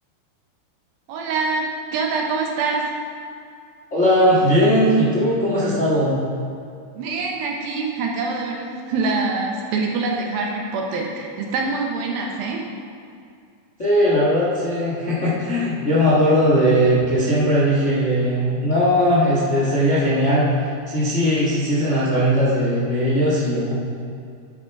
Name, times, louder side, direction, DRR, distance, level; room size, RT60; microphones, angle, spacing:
voice 1, 1.1-2.9 6.9-12.6, right 3 dB, 75° right, 0 dB, 2.6 m, -25 dB
voice 2, 3.9-6.2 13.8-23.8, equal, 35° left, -7 dB, 1.1 m, -19 dB
11.5 x 7.4 x 4.7 m, 2.4 s
omnidirectional pair, 4.5 m